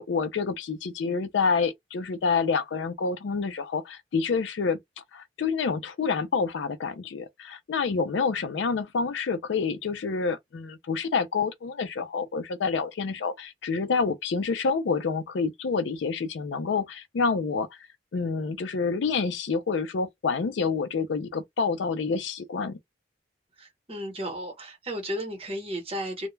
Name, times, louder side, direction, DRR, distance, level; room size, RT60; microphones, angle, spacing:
voice 1, 0.0-17.7 18.1-22.8, left 5 dB, 80° left, 0.4 m, -28 dB
voice 2, 23.6-26.3, equal, 30° right, 1.0 m, -34 dB
2.2 x 2.1 x 3.0 m
head